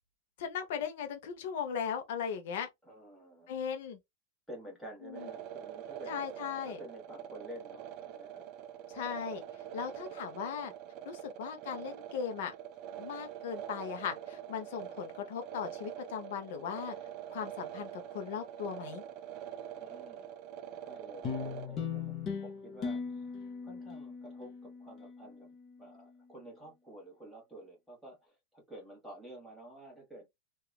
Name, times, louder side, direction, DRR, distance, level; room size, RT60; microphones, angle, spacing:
voice 1, 0.4-2.7 3.5-4.0 5.0-5.3 6.1-6.8 8.9-9.4 9.7-10.7 11.1-12.5 13.0-16.9 17.3-19.0, left 7 dB, 65° left, 0.6 m, -38 dB
voice 2, 2.8-3.5 4.5-8.4 9.7-9.8 19.8-20.4 20.8-23.3 23.6-25.5 25.8-30.3, right 1 dB, ahead, 1.3 m, -50 dB
sound 1, 5.1-21.7, right 10 dB, 40° right, 0.3 m, -45 dB
sound 2, 21.2-25.9, left 6 dB, 25° left, 0.7 m, -39 dB
2.9 x 2.3 x 2.3 m
supercardioid pair, 150°, 0 cm